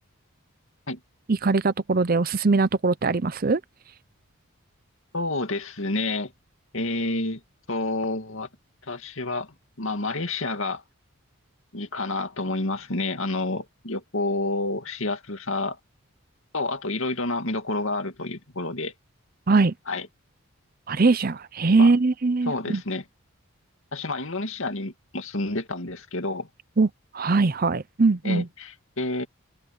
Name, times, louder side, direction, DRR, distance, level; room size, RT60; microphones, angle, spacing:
voice 1, 1.3-3.6 19.5-19.7 20.9-22.8 26.8-26.9 27.1-28.5, right 3 dB, 40° right, 0.6 m, -21 dB
voice 2, 5.1-6.3 6.7-7.4 7.7-8.5 8.8-10.8 11.7-15.8 16.5-18.9 19.9-20.1 21.8-21.9 22.5-23.0 23.9-26.5 28.2-29.3, left 2 dB, 65° left, 2.3 m, -29 dB
open air
head